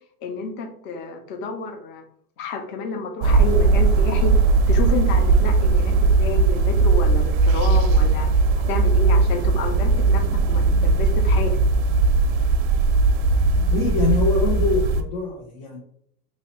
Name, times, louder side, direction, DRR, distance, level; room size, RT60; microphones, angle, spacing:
voice 1, 0.2-2.0 2.4-4.4 4.7-11.6, left 3 dB, 25° left, 6 dB, 0.3 m, -30 dB
sound 1, 3.2-15.0, right 3 dB, 50° right, 0.5 m, -18 dB
voice 2, 13.7-15.8, left 4 dB, 60° left, -4 dB, 1.0 m, -24 dB
3.1 x 2.6 x 2.9 m, 0.68 s
supercardioid pair, 125°, 45 cm